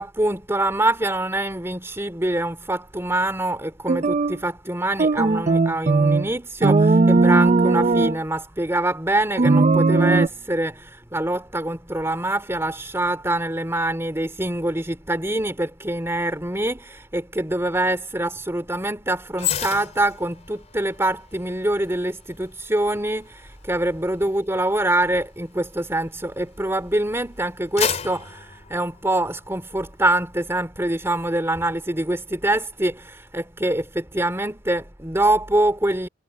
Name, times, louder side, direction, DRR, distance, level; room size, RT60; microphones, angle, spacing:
voice 1, 0.0-36.1, right 1 dB, 15° right, 2.9 m, -25 dB
sound 1, 3.9-4.4 5.0-6.3 6.6-8.2 9.4-10.3, right 3 dB, 35° right, 0.5 m, -17 dB
sound 2, 19.4-26.8 27.2-29.6 30.0-30.2, left 8 dB, 35° left, 3.2 m, -33 dB
head